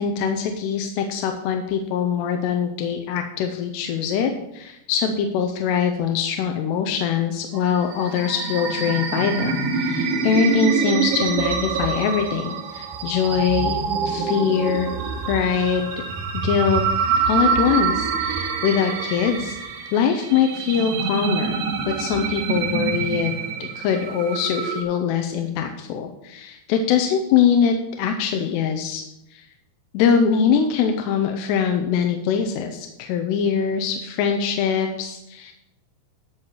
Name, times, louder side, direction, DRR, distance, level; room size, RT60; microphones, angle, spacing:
voice 1, 0.0-14.9 15.3-16.0 16.4-16.8 17.3-19.6 19.9-23.3 23.6-29.0 29.3-29.4 29.9-35.5, left 7 dB, 85° left, 4 dB, 2.8 m, -23 dB
sound 1, 7.5-24.8, right 6 dB, 70° right, 2.8 m, -26 dB
12.5 x 4.6 x 7.3 m, 0.86 s
omnidirectional pair, 5.0 m